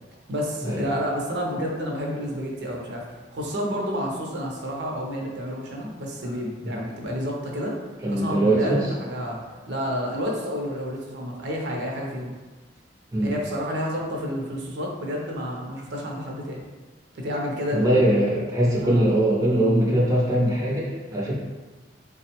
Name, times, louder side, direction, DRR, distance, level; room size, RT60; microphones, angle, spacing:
voice 1, 0.3-3.0 3.3-7.8 8.1-9.4 9.7-12.3 13.2-16.6 17.1-18.0 18.8-19.1, equal, 65° right, -1 dB, 0.5 m, -30 dB
voice 2, 8.0-8.9 13.1-13.3 17.7-21.3, right 1 dB, 20° right, -5 dB, 0.5 m, -22 dB
3.6 x 2.0 x 2.8 m, 1.3 s
head